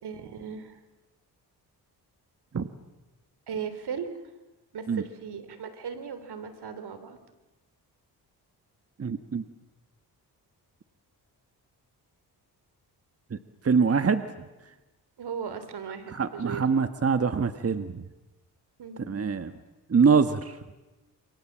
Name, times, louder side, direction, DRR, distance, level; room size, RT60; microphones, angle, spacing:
voice 1, 0.0-0.8 3.5-4.1 4.7-7.2 15.2-16.6 18.8-19.1, right 7 dB, 70° right, 10 dB, 3.5 m, -37 dB
voice 2, 9.0-9.4 13.3-13.4 13.6-14.5 16.1-18.0 19.1-19.5 19.9-20.6, right 5 dB, 35° right, 9 dB, 1.4 m, -24 dB
28.5 x 28.0 x 7.4 m, 1.1 s
cardioid pair, 75°, 41 cm